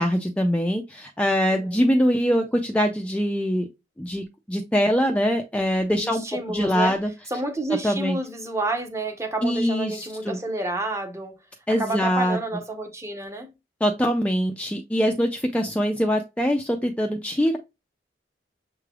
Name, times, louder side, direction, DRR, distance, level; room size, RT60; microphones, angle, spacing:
voice 1, 0.0-3.7 4.0-6.2 6.5-7.1 7.8-8.2 9.4-10.4 11.7-12.4 13.8-17.6, equal, 5° left, 0.3 m, -23 dB
voice 2, 1.5-1.8 6.0-7.0 7.3-11.4 11.7-13.5, right 2 dB, 15° right, 0.7 m, -30 dB
6.6 x 3.2 x 2.3 m
head